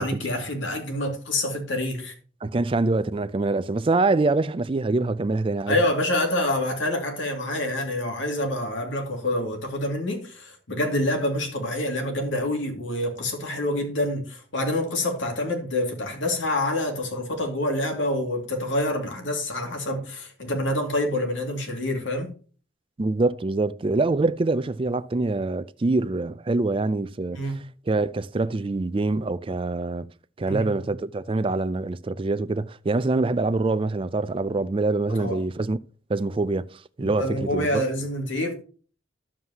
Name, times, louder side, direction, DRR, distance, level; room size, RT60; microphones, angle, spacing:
voice 1, 0.0-2.1 5.7-22.3 27.3-27.7 30.4-30.9 35.2-35.4 37.0-38.5, left 1 dB, 75° left, 2.4 m, -27 dB
voice 2, 2.4-5.8 23.0-27.4 27.9-30.1 30.4-35.8 36.1-37.8, right 3 dB, 30° right, 0.4 m, -25 dB
11.0 x 7.6 x 2.8 m
head